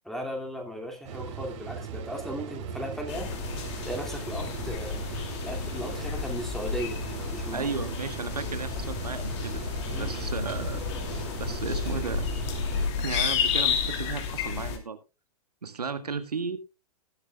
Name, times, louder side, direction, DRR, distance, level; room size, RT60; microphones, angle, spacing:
voice 1, 0.0-3.3 3.8-5.0 5.4-7.0 7.3-7.7 9.9-10.1, equal, ahead, 2.5 m, -36 dB
sound 1, 1.0-12.9, right 6 dB, 50° right, 3.3 m, -38 dB
sound 2, 3.1-14.8, left 6 dB, 45° left, 2.8 m, -31 dB
voice 2, 7.5-9.6 10.0-10.8 11.4-12.3 13.0-15.0 15.6-16.6, right 5 dB, 80° right, 1.7 m, -34 dB
19.0 x 10.0 x 2.3 m
figure-of-eight pair, 115°, 20 cm